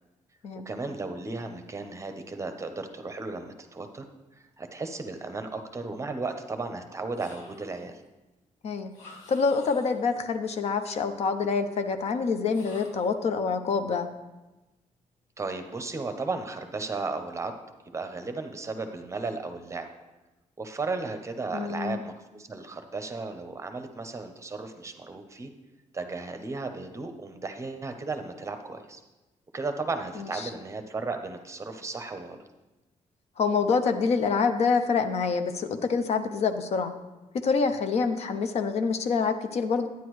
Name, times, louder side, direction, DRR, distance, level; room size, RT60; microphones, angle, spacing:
voice 1, 0.7-4.0 4.3-8.0 15.4-17.6 17.9-19.9 20.6-25.5 25.9-29.0 29.5-32.4, right 3 dB, 25° right, 7 dB, 0.7 m, -35 dB
sound 1, 7.1-7.9 8.9-10.1 12.5-13.2, left 2 dB, 75° left, 1.8 m, -51 dB
voice 2, 9.3-14.1 21.5-22.0 33.4-36.9 37.3-39.9, left 5 dB, 60° left, 8 dB, 0.6 m, -26 dB
9.8 x 9.3 x 3.1 m, 1.1 s
cardioid pair, 135°, 13 cm